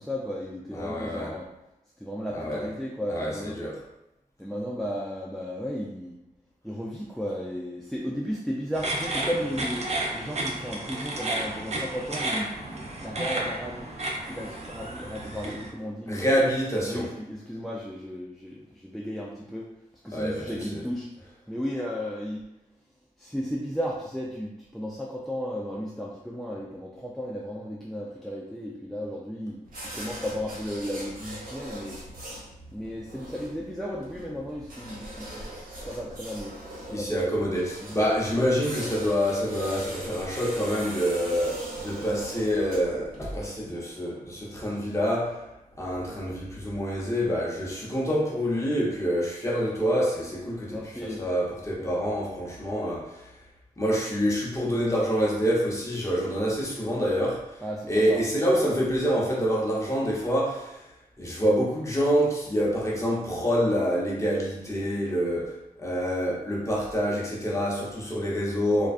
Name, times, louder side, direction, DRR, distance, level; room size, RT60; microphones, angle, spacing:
voice 1, 0.0-1.5 2.0-3.6 4.4-6.2 6.6-9.9 10.1-13.9 14.2-16.3 16.9-19.7 20.0-21.1 21.5-22.4 23.2-29.6 29.9-32.0 32.7-36.5 36.9-37.2 37.8-38.0 50.7-51.2 57.6-58.2, equal, ahead, -3 dB, 0.4 m, -34 dB
voice 2, 0.7-1.3 2.3-2.7 3.1-3.8 15.4-15.5 16.1-17.1 20.1-20.8 36.9-45.4 45.8-53.3 53.8-57.5 57.9-60.8 61.2-68.9, equal, 20° left, -3 dB, 0.8 m, -27 dB
sound 1, 8.7-15.7, right 1 dB, 45° right, 0.6 m, -32 dB
sound 2, 29.6-43.5, right 1 dB, 65° right, 0.9 m, -41 dB
2.3 x 2.2 x 2.4 m, 0.91 s
cardioid pair, 45°, 15 cm